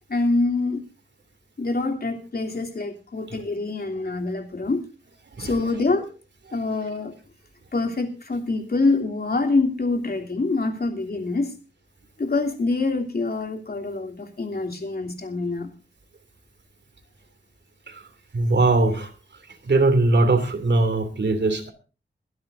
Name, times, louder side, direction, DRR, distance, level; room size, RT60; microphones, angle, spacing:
voice 1, 0.1-0.8 1.6-4.8 5.4-6.1 6.5-7.1 7.7-11.5 12.2-15.7, left 3 dB, 55° left, 4 dB, 3.0 m, -25 dB
voice 2, 18.3-19.1 19.7-21.7, right 2 dB, 65° right, 9 dB, 2.8 m, -20 dB
22.5 x 12.0 x 2.7 m, 0.34 s
wide cardioid pair, 80°, 20 cm